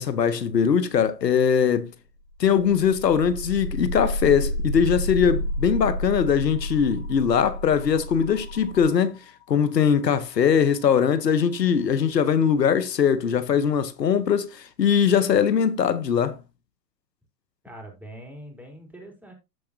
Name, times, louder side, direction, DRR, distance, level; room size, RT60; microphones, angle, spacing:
voice 1, 0.0-1.9 2.4-9.2 9.5-16.4, left 7 dB, 90° left, 1.2 m, -21 dB
sound 1, 2.3-12.2, left 1 dB, 30° left, 3.2 m, -32 dB
voice 2, 17.6-19.3, right 1 dB, 5° right, 3.7 m, -43 dB
14.5 x 4.9 x 2.8 m
hypercardioid pair, 115°, 48 cm